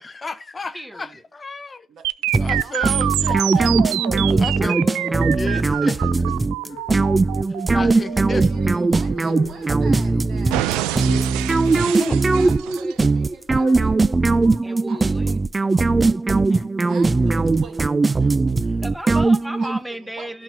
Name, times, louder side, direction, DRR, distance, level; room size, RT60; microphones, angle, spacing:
voice 1, 0.0-1.9 2.4-3.7 4.4-4.8 5.3-6.4 7.7-8.4 12.0-12.2 16.3-16.7 18.2-18.3 18.6-18.7, left 4 dB, 25° left, 0.6 m, -33 dB
sound 1, 2.0-10.0 10.5-13.1, right 15 dB, 85° right, 0.4 m, -27 dB
sound 2, 2.3-19.8, right 3 dB, 20° right, 0.4 m, -19 dB
voice 2, 2.4-4.3 8.2-11.3 11.7-16.3 16.9-17.9 19.6-20.4, right 4 dB, 60° right, 2.0 m, -43 dB
voice 3, 4.2-5.5 14.6-15.3 18.8-20.4, right 1 dB, 5° right, 1.0 m, -33 dB
sound 3, 6.7-13.9, left 6 dB, 90° left, 1.3 m, -42 dB
11.5 x 4.1 x 5.7 m
supercardioid pair, 80°, 0 cm